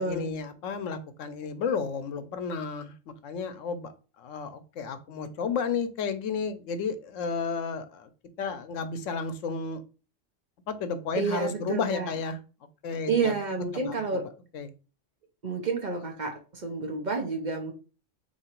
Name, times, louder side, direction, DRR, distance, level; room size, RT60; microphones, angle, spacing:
voice 1, 0.0-2.9 3.2-8.1 8.4-9.8 10.7-12.4 12.8-13.3 13.7-14.2 14.5-14.7, left 5 dB, 85° left, 9 dB, 1.0 m, -32 dB
voice 2, 11.2-12.1 13.1-14.2 15.4-17.7, right 4 dB, 45° right, 2 dB, 0.8 m, -29 dB
3.8 x 3.0 x 4.3 m, 0.34 s
omnidirectional pair, 1.3 m